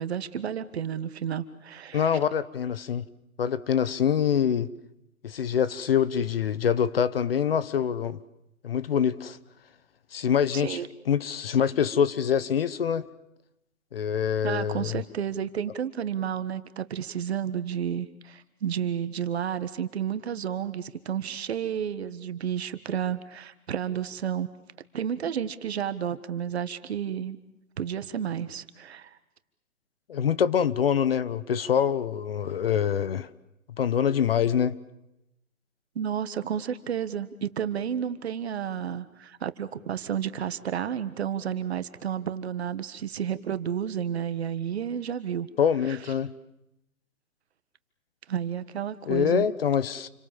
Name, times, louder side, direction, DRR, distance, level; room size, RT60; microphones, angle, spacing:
voice 1, 0.0-2.1 10.5-10.9 14.4-24.5 24.9-27.4 27.8-29.2 35.9-45.5 45.9-46.0 48.3-49.5, right 8 dB, 45° right, 1.6 m, -31 dB
voice 2, 1.9-3.0 3.4-4.7 5.2-8.2 8.6-9.4 10.1-10.8 11.1-13.0 13.9-15.0 30.1-33.3 33.8-34.7 45.6-46.3 49.1-50.1, left 8 dB, 40° left, 1.0 m, -25 dB
29.0 x 24.0 x 7.4 m
hypercardioid pair, 165°, 42 cm